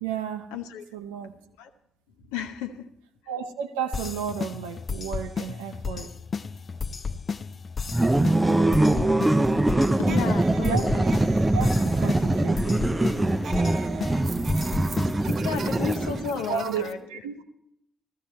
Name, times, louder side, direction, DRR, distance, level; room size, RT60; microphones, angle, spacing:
voice 1, 0.0-0.5 0.9-1.4 3.3-6.1 10.6-11.1 11.5-12.9 16.5-17.4, right 8 dB, 75° right, 0.8 m, -32 dB
voice 2, 0.5-0.8 1.6-1.7 2.3-2.9 10.0-11.0 15.2-17.2, left 7 dB, 75° left, 0.9 m, -33 dB
sound 1, 3.9-15.4, left 5 dB, 40° left, 0.5 m, -34 dB
sound 2, 7.9-16.5, right 1 dB, 15° right, 0.6 m, -23 dB
sound 3, 10.0-16.9, right 5 dB, 50° right, 1.0 m, -40 dB
15.5 x 14.0 x 4.4 m
figure-of-eight pair, 45°, 0 cm